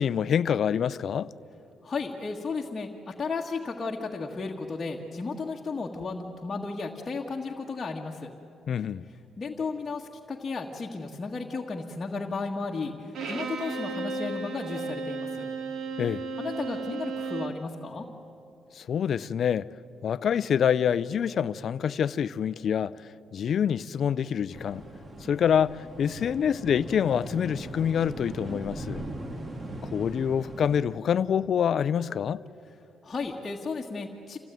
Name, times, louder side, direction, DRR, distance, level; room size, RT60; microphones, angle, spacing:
voice 1, 0.0-1.3 8.7-9.1 16.0-16.2 18.7-19.7 20.0-23.0 23.3-24.8 25.2-29.0 29.9-32.4, left 8 dB, 60° left, 0.6 m, -26 dB
voice 2, 1.8-8.3 9.4-15.5 16.4-18.1 33.0-34.4, left 4 dB, 30° left, 1.7 m, -34 dB
Bowed string instrument, 13.1-17.6, right 4 dB, 65° right, 2.1 m, -34 dB
sound 1, 24.5-30.8, right 1 dB, 30° right, 2.3 m, -39 dB
27.0 x 16.5 x 9.3 m
cardioid pair, 90°, 0 cm